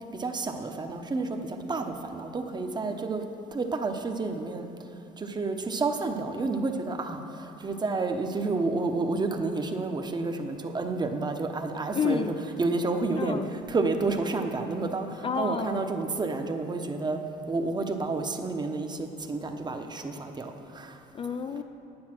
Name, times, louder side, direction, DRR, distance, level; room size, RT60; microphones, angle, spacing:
voice 1, 0.1-3.2 3.5-4.7 5.2-12.3 12.6-17.2 17.5-21.0, right 3 dB, 25° right, 5 dB, 0.9 m, -30 dB
voice 2, 11.9-12.3 13.2-13.5 15.2-15.8 21.1-21.6, left 6 dB, 30° left, 8 dB, 0.4 m, -30 dB
9.7 x 9.7 x 6.1 m, 2.8 s
cardioid pair, 110°, 17 cm